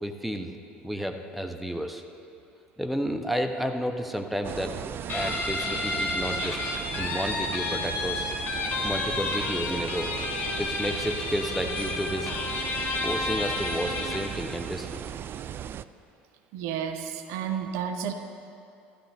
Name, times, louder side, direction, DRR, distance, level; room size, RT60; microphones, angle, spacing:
voice 1, 0.0-2.0 2.8-4.8 5.1-6.6 7.0-8.3 8.8-12.3 13.0-15.0, equal, ahead, 6 dB, 1.1 m, -31 dB
sound 1, 4.4-15.8, right 9 dB, 40° right, 0.4 m, -37 dB
Guitar, 5.1-14.3, left 3 dB, 40° left, 3.0 m, -31 dB
voice 2, 16.5-18.1, right 8 dB, 60° right, 7 dB, 1.0 m, -31 dB
15.5 x 13.0 x 6.7 m, 2.7 s
figure-of-eight pair, 60°, 6 cm